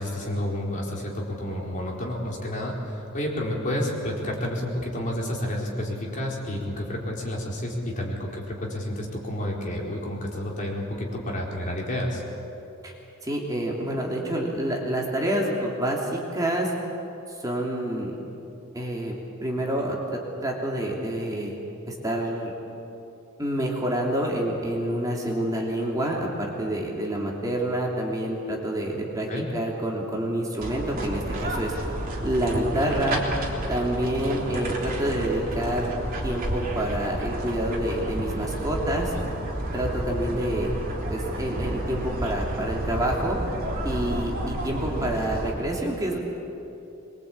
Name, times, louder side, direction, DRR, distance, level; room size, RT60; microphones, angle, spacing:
voice 1, 0.0-12.2 29.3-29.5, left 1 dB, 40° left, -2 dB, 4.3 m, -30 dB
voice 2, 13.2-16.7 17.4-18.2 18.7-19.1 19.4-21.6 21.9-22.5 23.4-31.7 32.2-33.2 33.7-36.0 36.2-39.1 39.7-40.7 41.1-43.4 43.8-46.2, right 1 dB, 20° right, -2 dB, 3.1 m, -27 dB
sound 1, 30.6-45.5, right 1 dB, 45° right, 3.5 m, -31 dB
24.0 x 22.5 x 8.6 m, 2.9 s
head